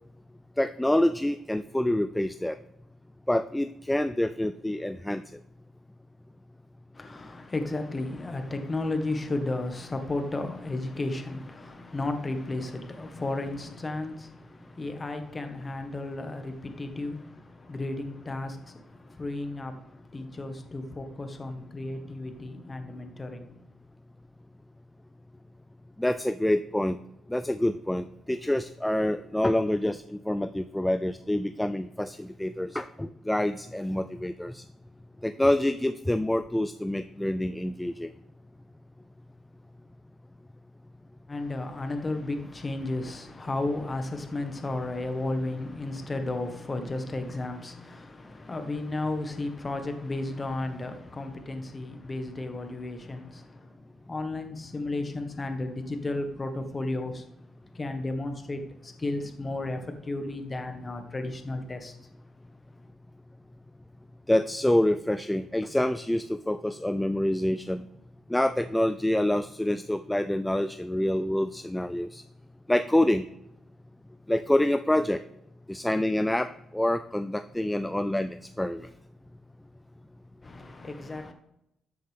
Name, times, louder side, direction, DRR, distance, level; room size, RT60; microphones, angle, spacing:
voice 1, 0.6-2.5 3.3-5.2 26.0-27.0 27.3-34.6 35.2-38.1 64.3-67.8 68.3-72.2 72.7-73.2 74.3-75.2 75.7-78.9, left 1 dB, 5° left, 0.4 m, -27 dB
voice 2, 6.9-23.6 41.3-57.3 57.7-62.0 80.4-81.3, left 2 dB, 25° left, 1.5 m, -33 dB
13.0 x 7.8 x 3.6 m
cardioid pair, 90°, 0 cm